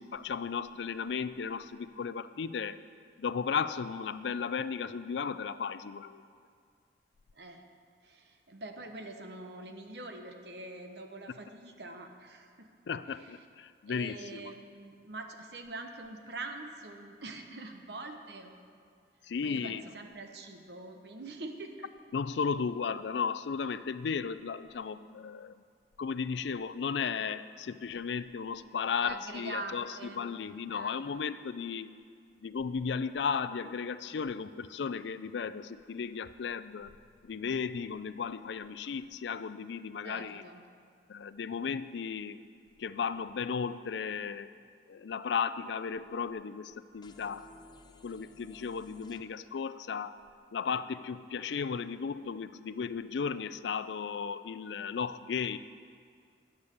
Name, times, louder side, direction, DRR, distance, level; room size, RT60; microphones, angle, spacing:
voice 1, 0.0-2.8 3.2-6.2 12.9-14.5 19.3-19.8 22.1-25.5 26.0-31.9 32.4-36.9 37.2-40.4 41.1-42.4 42.8-44.5 44.9-47.4 48.0-50.2 50.5-55.6, left 6 dB, 80° left, 14 dB, 0.4 m, -35 dB
voice 2, 8.0-12.7 13.2-13.3 13.9-18.8 19.4-21.9 29.0-30.2 30.7-31.0 40.0-40.6, right 2 dB, 70° right, 5 dB, 1.1 m, -44 dB
sound 1, 47.0-49.2, left 2 dB, 25° left, 0.5 m, -55 dB
11.5 x 8.2 x 6.8 m, 2.2 s
head